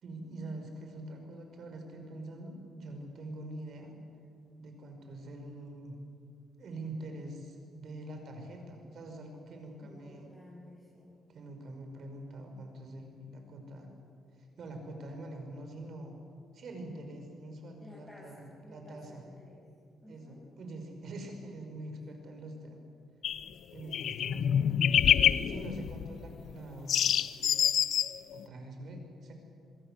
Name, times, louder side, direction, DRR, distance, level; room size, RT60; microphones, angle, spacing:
voice 1, 0.0-4.0 4.6-6.0 6.6-10.3 11.3-13.9 14.6-16.2 16.5-19.2 20.1-22.8 23.7-25.0 25.4-27.1 28.3-29.3, right 1 dB, 60° right, 4 dB, 5.9 m, -44 dB
voice 2, 9.8-11.2 17.8-19.6 20.0-20.4, left 1 dB, 10° left, -5 dB, 6.6 m, -54 dB
sound 1, 23.2-23.5 23.8-26.5 26.9-28.4, left 9 dB, 65° left, 0.7 m, -27 dB
27.5 x 22.0 x 7.8 m, 2.3 s
cardioid pair, 90°, 0 cm